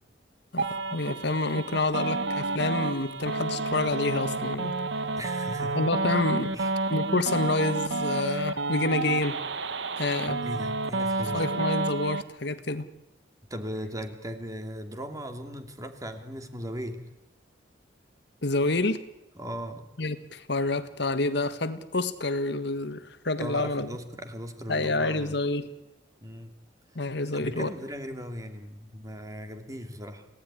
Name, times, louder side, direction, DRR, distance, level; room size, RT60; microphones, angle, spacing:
voice 1, 0.5-4.7 5.7-6.5 6.9-9.4 10.0-10.4 11.3-12.9 18.4-19.0 20.0-23.9 24.7-25.7 26.9-27.7, left 2 dB, 65° left, 10 dB, 1.6 m, -28 dB
sound 1, 0.6-12.2, right 3 dB, 70° right, 1.5 m, -30 dB
voice 2, 5.1-5.8 6.5-6.7 10.3-11.5 13.5-17.0 19.4-19.8 23.4-25.4 26.2-26.5 27.3-30.3, equal, 20° right, 6 dB, 2.7 m, -38 dB
28.5 x 17.5 x 9.9 m, 0.94 s
head